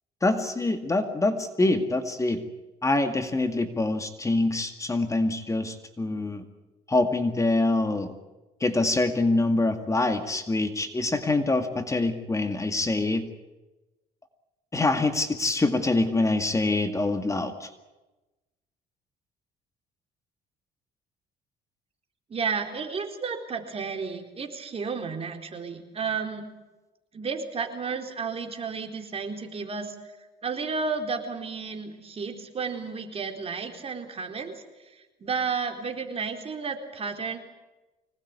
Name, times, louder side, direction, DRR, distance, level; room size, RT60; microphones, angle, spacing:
voice 1, 0.2-2.4 2.8-6.4 6.9-8.1 8.6-13.2 14.7-17.7, left 2 dB, 20° left, 7 dB, 2.1 m, -25 dB
voice 2, 22.3-26.5 27.1-29.9 30.4-37.4, right 5 dB, 35° right, 4 dB, 4.1 m, -32 dB
25.0 x 19.5 x 9.7 m, 1.1 s
cardioid pair, 110°, 17 cm